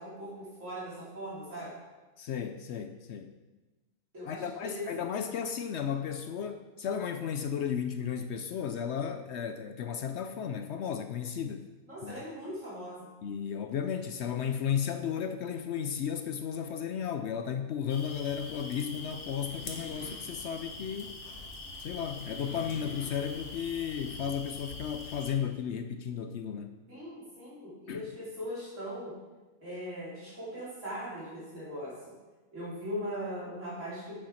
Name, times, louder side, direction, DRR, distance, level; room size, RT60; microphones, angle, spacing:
voice 1, 0.0-1.7 4.1-4.8 11.9-13.1 26.9-29.1 29.6-31.9 32.5-34.2, equal, 55° right, -8 dB, 3.6 m, -40 dB
voice 2, 2.2-3.3 4.2-11.7 12.0-12.2 13.2-21.2 21.8-26.7 27.9-28.1, left 8 dB, 70° left, 8 dB, 0.7 m, -34 dB
sound 1, 17.9-25.3, left 2 dB, 55° left, 1.5 m, -43 dB
9.4 x 6.9 x 4.4 m, 1.2 s
omnidirectional pair, 1.6 m